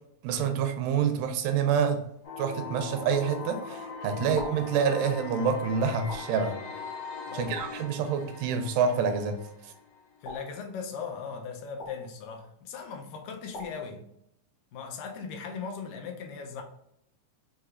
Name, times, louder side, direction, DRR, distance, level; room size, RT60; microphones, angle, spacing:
voice 1, 0.2-2.1 2.4-6.6 7.3-9.4, right 6 dB, 85° right, 2.2 m, -27 dB
sound 1, 2.2-10.2, left 4 dB, 65° left, 2.7 m, -40 dB
sound 2, 4.4-4.8 6.1-6.5 7.6-7.9 9.0-9.3 10.2-10.7 11.8-12.1 13.5-13.9, left 2 dB, 40° left, 1.3 m, -43 dB
voice 2, 7.3-7.6 10.2-14.0 14.7-16.6, left 6 dB, 90° left, 2.3 m, -38 dB
6.5 x 2.8 x 2.4 m
omnidirectional pair, 3.9 m